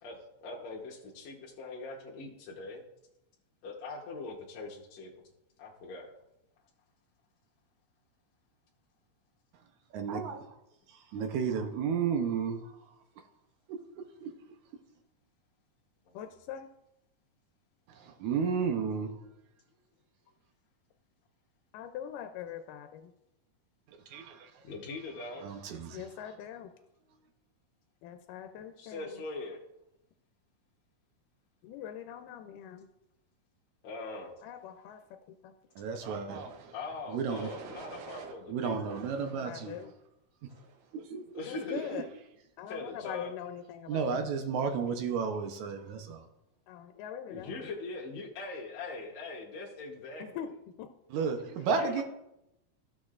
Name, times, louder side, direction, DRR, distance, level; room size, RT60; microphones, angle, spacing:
voice 1, 0.0-2.8 3.6-5.1 5.6-6.1 24.7-25.5 28.8-29.6 33.8-34.3 36.7-38.8 41.3-42.1 42.7-43.3 47.3-50.2 51.7-52.0, left 3 dB, 65° left, 2.1 m, -41 dB
voice 2, 9.9-10.6 11.1-12.8 14.2-14.3 17.9-19.2 24.1-24.6 25.4-26.0 35.8-36.7 37.1-37.5 38.5-39.8 40.9-42.0 43.9-46.3 51.1-52.0, right 6 dB, 75° right, 2.0 m, -33 dB
voice 3, 16.2-16.7 21.7-23.1 25.9-26.7 28.0-29.2 31.6-32.9 34.4-35.0 35.3-35.5 39.5-39.9 41.4-42.1 42.6-44.3 46.7-47.6 50.2-50.5 50.8-50.9 51.2-51.3, left 9 dB, 90° left, 2.2 m, -42 dB
sound 1, 36.3-36.7 37.3-38.4 38.9-39.9 40.5-40.9, right 5 dB, 90° right, 2.5 m, -48 dB
14.5 x 6.5 x 2.4 m
omnidirectional pair, 3.7 m